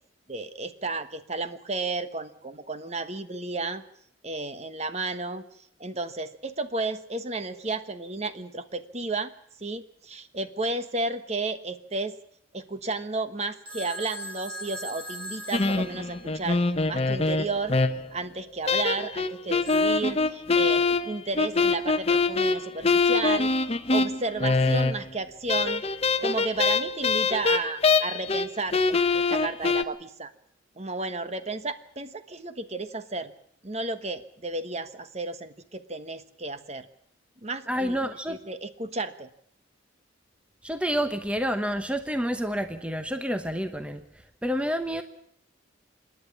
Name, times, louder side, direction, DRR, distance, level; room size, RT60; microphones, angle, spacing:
voice 1, 0.3-3.8 4.2-5.4 5.8-9.3 9.6-12.2 12.5-17.8 18.1-23.5 23.9-25.8 26.2-30.3 30.8-33.3 33.6-36.9 37.4-38.0 38.3-39.3, right 3 dB, 35° right, 10 dB, 1.3 m, -33 dB
Telephone, 13.7-16.7 19.7-20.1, equal, 50° right, 6.9 m, -40 dB
sound 1, 15.5-18.2 18.7-25.2 25.5-28.5 28.7-29.8, left 3 dB, 30° left, 0.9 m, -24 dB
voice 2, 37.7-38.4 40.6-44.0 44.4-45.0, equal, 5° right, 8 dB, 1.0 m, -28 dB
27.0 x 11.0 x 9.9 m, 0.68 s
head